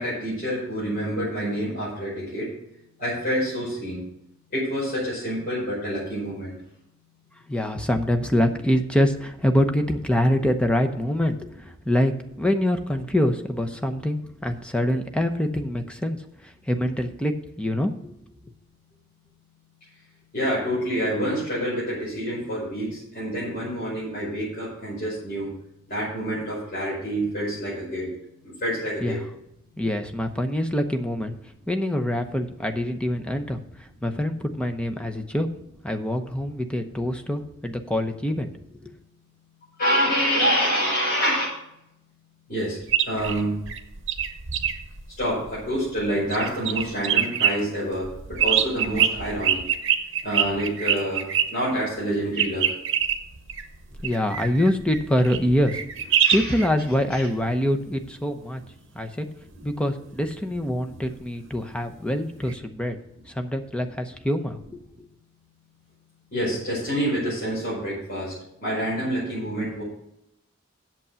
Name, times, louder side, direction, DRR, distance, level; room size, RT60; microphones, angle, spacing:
voice 1, 0.0-2.4 3.0-4.0 4.5-6.5 20.3-22.9 23.1-25.5 25.9-28.1 28.6-29.2 39.8-41.5 42.5-42.8 43.1-43.5 45.2-48.1 48.4-49.6 50.2-51.2 51.5-52.6 56.2-56.6 57.1-57.3 66.3-68.3 68.6-69.8, equal, 45° left, -9 dB, 5.2 m, -27 dB
voice 2, 7.5-12.1 12.4-16.2 16.4-18.1 29.0-29.2 29.8-31.4 31.7-33.6 34.0-35.5 35.8-38.5 38.8-38.9 54.0-55.8 56.3-58.6 58.9-59.3 59.6-63.0 63.3-64.8, left 1 dB, 5° left, 6 dB, 0.7 m, -25 dB
sound 1, 42.8-46.0 46.3-47.5 48.0-51.5 52.4-56.7 62.5-62.6, right 9 dB, 60° right, 0.9 m, -24 dB
8.3 x 7.4 x 6.9 m, 0.80 s
head